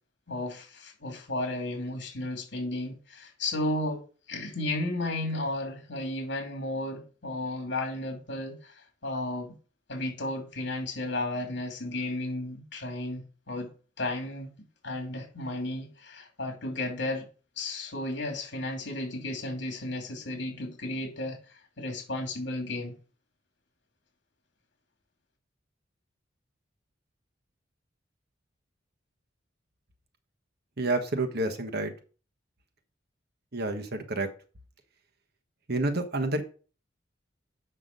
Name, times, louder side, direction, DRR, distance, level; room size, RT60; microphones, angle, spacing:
voice 1, 0.3-4.0 4.3-9.5 9.9-13.7 14.0-14.5 14.8-17.3 17.6-22.9, left 1 dB, 65° left, 2.9 m, -33 dB
voice 2, 30.8-31.9 33.5-34.3 35.7-36.4, right 2 dB, 55° right, 1.3 m, -29 dB
7.6 x 6.1 x 5.4 m
head